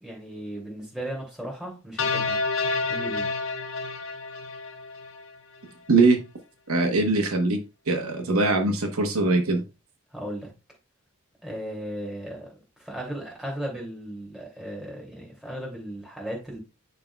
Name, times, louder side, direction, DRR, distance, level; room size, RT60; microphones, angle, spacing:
voice 1, 0.0-2.4 2.9-3.3 10.1-10.5 11.4-16.6, right 1 dB, 5° right, -3 dB, 2.5 m, -36 dB
sound 1, 2.0-5.3, left 3 dB, 65° left, 0.8 m, -29 dB
voice 2, 5.9-6.2 6.7-7.6 7.9-9.6, right 3 dB, 80° right, 4 dB, 1.1 m, -22 dB
11.0 x 3.7 x 2.3 m, 0.28 s
head